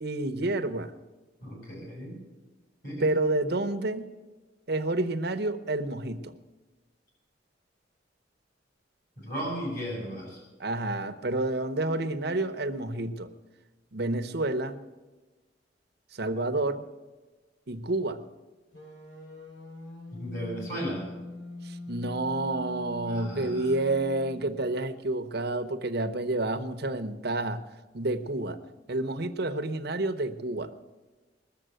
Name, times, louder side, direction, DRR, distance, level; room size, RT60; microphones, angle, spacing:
voice 1, 0.0-0.9 3.0-4.1 4.7-6.3 10.6-13.3 13.9-14.8 16.1-16.8 17.7-18.2 21.6-27.6 27.9-28.6 28.9-30.7, right 2 dB, 60° right, 8 dB, 1.0 m, -29 dB
voice 2, 1.4-2.2 2.8-3.1 9.2-10.4 20.1-21.1 23.0-23.7, equal, 50° left, -4 dB, 7.0 m, -35 dB
sound 1, 18.7-24.8, left 2 dB, 75° left, 6.5 m, -43 dB
20.0 x 7.4 x 9.1 m, 1.2 s
head